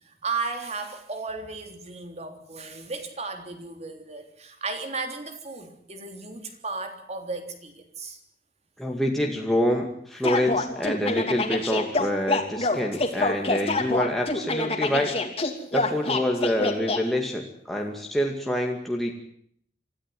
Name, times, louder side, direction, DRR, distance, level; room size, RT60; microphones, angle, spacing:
voice 1, 0.2-8.2, right 4 dB, 40° right, 6 dB, 3.4 m, -34 dB
voice 2, 8.8-15.1 15.7-19.1, equal, ahead, 0 dB, 2.3 m, -26 dB
sound 1, 10.2-17.0, left 2 dB, 35° left, 2.9 m, -26 dB
25.0 x 14.5 x 9.4 m, 0.65 s
head